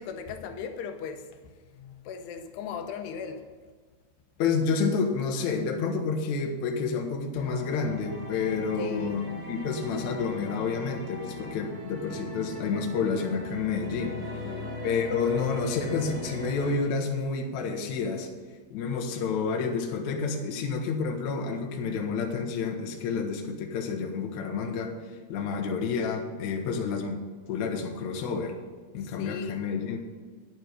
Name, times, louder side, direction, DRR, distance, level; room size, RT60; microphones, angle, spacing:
voice 1, 0.0-3.6 8.8-9.2 14.3-14.9 23.1-23.3 29.0-29.7, left 6 dB, 85° left, 2.9 m, -38 dB
voice 2, 4.4-14.5 14.8-18.3 18.7-24.9 25.3-27.2 27.5-28.6 28.9-30.0, left 5 dB, 60° left, 2.1 m, -29 dB
sound 1, 7.3-16.8, left 1 dB, 20° right, 1.1 m, -39 dB
9.6 x 9.5 x 5.1 m
omnidirectional pair, 4.7 m